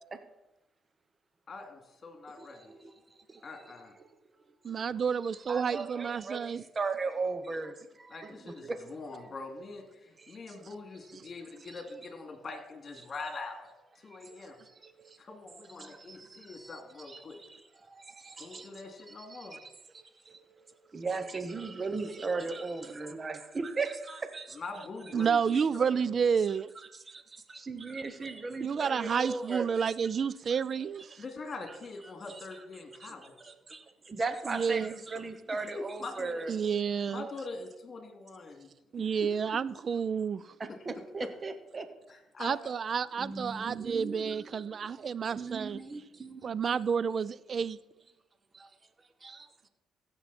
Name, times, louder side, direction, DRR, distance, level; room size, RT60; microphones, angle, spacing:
voice 1, 1.5-2.7 3.4-3.9 8.1-14.6 15.2-17.4 18.4-19.6 24.5-25.6 25.9-26.0 31.2-33.5 35.7-36.4 37.1-38.7 39.0-39.3 40.7-40.8 41.2-41.3 42.1-42.7, left 3 dB, 40° left, 4 dB, 2.6 m, -43 dB
voice 2, 2.4-3.7 4.0-4.1 4.7-4.9 5.3-8.8 10.2-10.7 11.0-11.1 11.6-11.8 14.0-15.2 15.7-16.8 17.0-19.7 19.9-24.6 25.5-25.6 26.9-29.9 31.7-31.8 32.3-32.6 33.0-33.1 33.4-36.5 40.6-41.9 43.2-47.0 48.5-48.8 49.2-49.7, right 4 dB, 35° right, 9 dB, 1.0 m, -39 dB
voice 3, 4.6-6.6 25.1-26.7 28.6-31.2 34.5-34.9 36.5-37.3 38.9-40.4 42.4-45.8 46.4-47.8, right 6 dB, 50° right, 20 dB, 0.4 m, -30 dB
15.5 x 6.7 x 4.3 m, 0.96 s
supercardioid pair, 70°, 0 cm